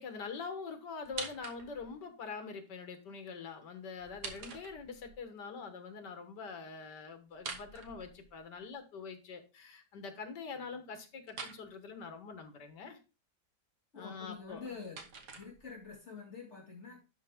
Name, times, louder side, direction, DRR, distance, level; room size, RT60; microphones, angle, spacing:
voice 1, 0.0-13.0 13.9-14.8, left 5 dB, 85° left, 8 dB, 2.0 m, -44 dB
sound 1, 1.0-2.0 4.0-5.2 7.3-8.6 11.3-11.6 14.3-16.0, right 4 dB, 75° right, 1.9 m, -46 dB
voice 2, 13.9-15.0 15.3-17.0, left 5 dB, 40° left, -1 dB, 2.3 m, -46 dB
11.5 x 4.9 x 3.6 m, 0.30 s
omnidirectional pair, 1.8 m